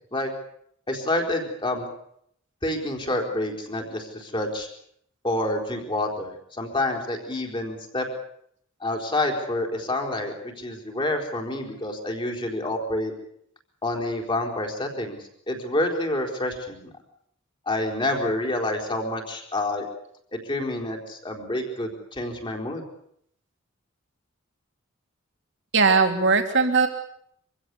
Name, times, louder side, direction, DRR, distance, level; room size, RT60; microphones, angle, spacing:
voice 1, 0.9-1.9 2.6-4.7 5.2-8.1 8.8-13.1 13.8-15.2 15.5-16.9 17.7-19.9 20.3-22.8, left 1 dB, 25° left, 2 dB, 4.2 m, -28 dB
voice 2, 25.7-26.9, right 4 dB, 60° right, 4 dB, 3.1 m, -19 dB
25.5 x 16.0 x 8.4 m, 0.71 s
head